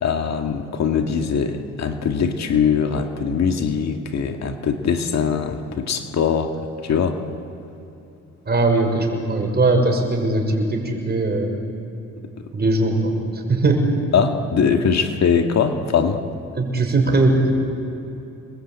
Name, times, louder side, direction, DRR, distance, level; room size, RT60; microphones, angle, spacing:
voice 1, 0.0-7.2 14.1-16.2, left 6 dB, 60° left, 5 dB, 2.1 m, -21 dB
voice 2, 8.5-11.6 12.5-13.9 16.5-17.5, right 2 dB, 35° right, 3 dB, 5.8 m, -20 dB
27.0 x 21.5 x 8.9 m, 2.9 s
cardioid pair, 90°, 30 cm